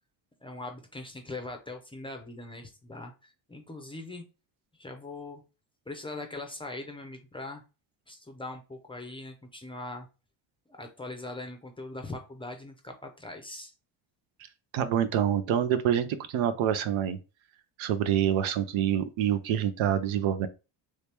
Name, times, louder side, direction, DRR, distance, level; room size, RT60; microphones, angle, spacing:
voice 1, 0.4-4.2 4.7-5.4 5.9-7.6 8.1-10.1 10.7-13.7, left 2 dB, 10° left, 0.5 m, -41 dB
voice 2, 14.7-17.2 17.8-20.5, right 9 dB, 80° right, 0.7 m, -26 dB
3.2 x 2.9 x 3.3 m
cardioid pair, 125°, 48 cm